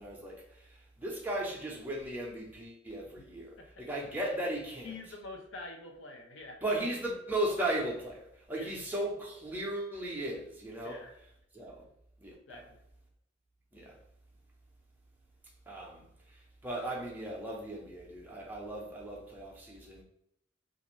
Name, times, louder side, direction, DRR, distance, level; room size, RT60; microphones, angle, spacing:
voice 1, 0.0-4.9 6.6-11.0 11.5-11.9 12.2-12.6 13.7-14.0 15.7-16.0 16.3-20.0, right 1 dB, 10° right, 0.6 m, -37 dB
voice 2, 4.8-6.6 8.6-8.7 10.8-11.1 12.5-12.8, left 3 dB, 75° left, 0.7 m, -46 dB
2.5 x 2.5 x 3.0 m
head